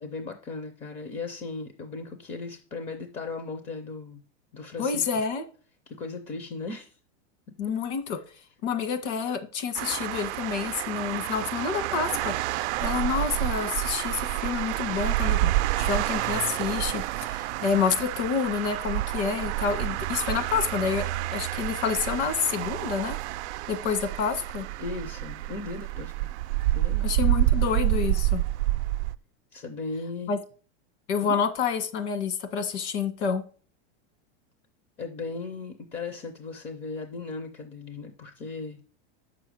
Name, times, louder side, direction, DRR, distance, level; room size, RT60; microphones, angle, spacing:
voice 1, 0.0-4.2 4.5-5.1 5.9-7.0 24.8-26.1 26.7-27.0 29.5-30.3 31.2-31.3 35.0-38.8, left 4 dB, 20° left, 8 dB, 0.5 m, -37 dB
voice 2, 4.8-5.4 7.6-8.2 8.6-12.3 12.8-15.5 15.8-21.0 21.3-23.2 23.7-24.7 27.0-28.4 30.3-30.4 31.1-33.4, left 6 dB, 70° left, 9 dB, 1.6 m, -28 dB
sound 1, 9.7-29.1, right 16 dB, 70° right, 0.5 m, -28 dB
7.5 x 6.1 x 6.2 m, 0.40 s
supercardioid pair, 165°, 35 cm